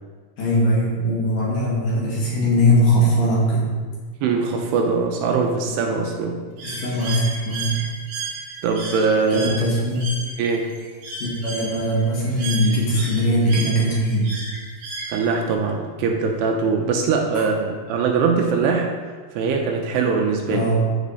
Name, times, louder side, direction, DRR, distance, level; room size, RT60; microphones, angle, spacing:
voice 1, 0.4-3.7 6.6-7.8 9.3-10.0 11.2-14.4 17.3-17.4 20.5-20.9, equal, 55° left, -6 dB, 3.5 m, -20 dB
voice 2, 4.2-6.4 8.6-9.6 10.4-10.7 15.1-18.9 19.3-20.7, right 5 dB, 80° right, 2 dB, 2.7 m, -22 dB
Bird, 6.6-15.5, right 4 dB, 55° right, 2.4 m, -34 dB
13.5 x 5.3 x 4.1 m, 1.5 s
omnidirectional pair, 5.0 m